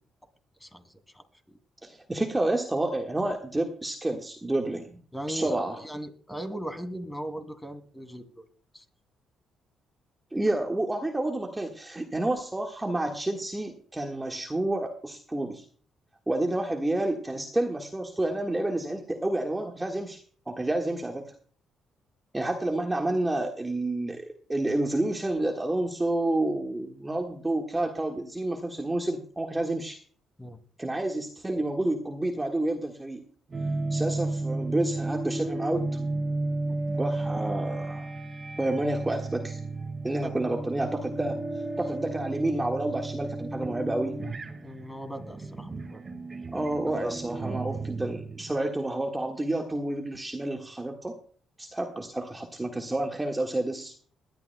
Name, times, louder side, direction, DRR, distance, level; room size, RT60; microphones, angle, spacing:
voice 1, 1.1-1.6 5.1-8.4 8.7-8.8 30.4-30.6 36.7-36.8 40.2-40.3 44.6-46.0 47.0-47.1, right 1 dB, 10° left, 7 dB, 2.6 m, -38 dB
voice 2, 1.8-5.0 5.3-5.8 10.3-15.6 16.3-21.3 22.3-30.0 30.8-33.2 33.9-35.9 36.9-38.1 38.6-39.6 40.0-41.4 41.8-44.2 46.5-51.1 51.6-53.9, right 1 dB, 15° right, 2 dB, 1.5 m, -29 dB
sound 1, 33.5-48.7, right 2 dB, 30° right, 1.9 m, -33 dB
21.5 x 12.0 x 2.2 m, 0.44 s
cardioid pair, 90°, 0 cm